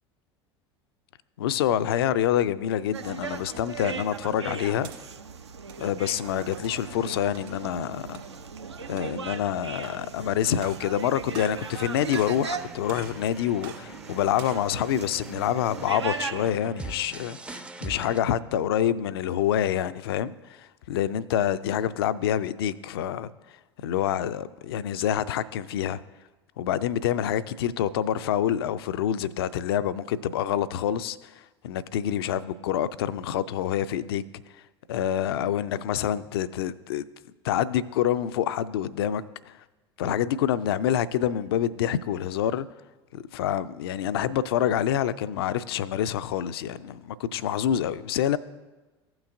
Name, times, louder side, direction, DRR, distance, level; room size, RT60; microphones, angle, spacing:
voice 1, 1.4-4.9 5.8-8.2 8.9-23.3 23.8-26.0 26.6-31.3 31.6-34.2 34.9-37.1 37.4-39.5 40.0-42.7 43.1-48.4, left 10 dB, 60° left, 15 dB, 0.4 m, -27 dB
sound 1, 2.9-16.6, right 5 dB, 80° right, 0.5 m, -38 dB
sound 2, 4.8-5.0 5.5-5.9 6.5-6.8 7.3-7.6 8.1-8.3 8.9-9.3 9.8-9.9 10.5-10.9 11.2-11.8 12.1-12.4 12.9-13.2 13.6-13.8 14.3-14.7, right 9 dB, 55° right, 1.6 m, -44 dB
sound 3, 11.3-18.2, right 2 dB, 5° right, 0.4 m, -43 dB
15.5 x 6.0 x 2.6 m, 1.2 s
figure-of-eight pair, 75°, 14 cm